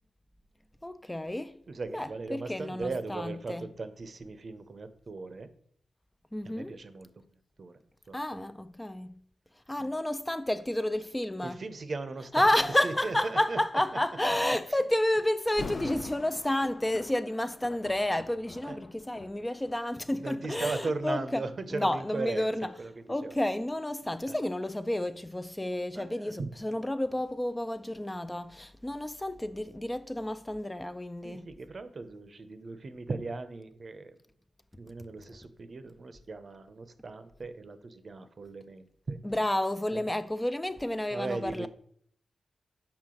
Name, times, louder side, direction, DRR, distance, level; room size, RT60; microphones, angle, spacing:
voice 1, 0.8-1.6 1.9-3.7 6.3-6.8 8.1-9.2 9.7-11.6 12.3-21.4 21.7-22.7 23.1-31.5 39.2-41.7, left 1 dB, 15° left, 0.3 m, -30 dB
voice 2, 1.7-5.5 6.4-7.1 7.6-7.7 8.1-8.4 9.8-9.9 11.4-12.5 12.8-13.6 18.6-18.8 20.2-23.4 24.3-24.4 25.9-26.5 31.2-34.2 34.8-39.2 39.9-40.1 41.1-41.7, right 3 dB, 55° right, 0.6 m, -38 dB
Thunder, 15.5-20.4 21.1-21.3 22.0-24.8 25.1-25.2, left 3 dB, 60° left, 0.6 m, -45 dB
5.8 x 4.3 x 3.7 m
supercardioid pair, 45°, 0 cm